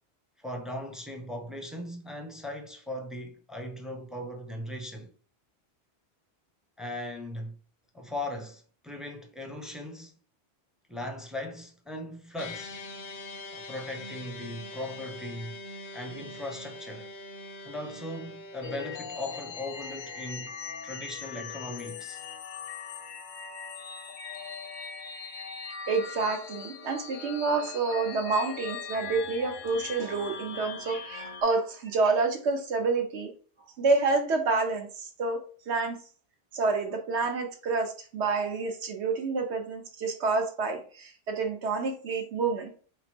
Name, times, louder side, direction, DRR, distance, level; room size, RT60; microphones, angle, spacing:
voice 1, 0.4-5.1 6.8-7.6 7.9-10.1 10.9-12.8 13.5-15.6 15.9-17.1 17.6-20.6 20.8-22.2, left 1 dB, ahead, 0.4 m, -38 dB
sound 1, 12.4-19.0, left 2 dB, 90° left, 1.1 m, -43 dB
sound 2, 18.6-31.4, left 6 dB, 60° left, 0.6 m, -40 dB
voice 2, 25.9-33.3 33.8-35.4 35.7-36.0 36.5-42.7, right 4 dB, 80° right, 1.1 m, -28 dB
4.3 x 2.0 x 4.4 m
omnidirectional pair, 1.1 m